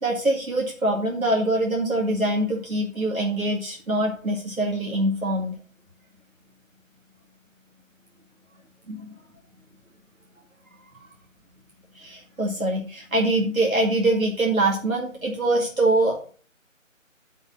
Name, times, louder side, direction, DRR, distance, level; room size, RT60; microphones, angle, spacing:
voice 1, 0.0-5.5 8.9-9.1 11.9-16.3, right 1 dB, 85° right, -2 dB, 2.3 m, -24 dB
9.3 x 5.4 x 5.6 m, 0.41 s
figure-of-eight pair, 160°, 41 cm